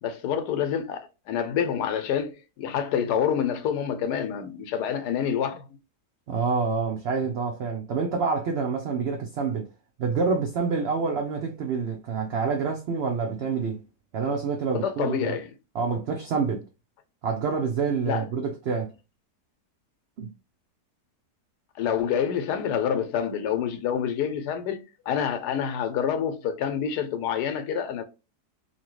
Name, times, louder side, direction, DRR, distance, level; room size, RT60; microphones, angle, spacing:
voice 1, 0.0-5.6 14.7-15.5 18.0-18.3 21.8-24.8 25.1-28.0, left 8 dB, 90° left, 1.2 m, -27 dB
voice 2, 6.3-9.7 10.0-13.8 14.1-15.4 15.7-16.7 17.2-18.9 20.2-20.3, right 5 dB, 80° right, 0.5 m, -27 dB
2.8 x 2.7 x 2.9 m
omnidirectional pair, 1.7 m